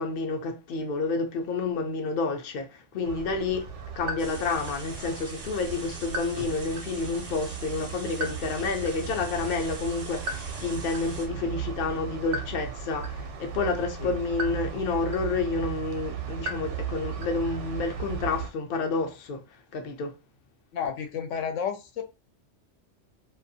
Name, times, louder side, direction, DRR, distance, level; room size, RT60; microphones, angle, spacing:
voice 1, 0.0-3.7 4.0-19.4 19.7-20.1, left 4 dB, 55° left, 0.6 m, -29 dB
sound 1, 3.0-18.5, right 5 dB, 75° right, 0.9 m, -36 dB
sound 2, 4.2-11.3, right 3 dB, 45° right, 0.5 m, -44 dB
voice 2, 20.7-22.0, left 7 dB, 80° left, 0.9 m, -31 dB
2.3 x 2.3 x 2.6 m
omnidirectional pair, 1.3 m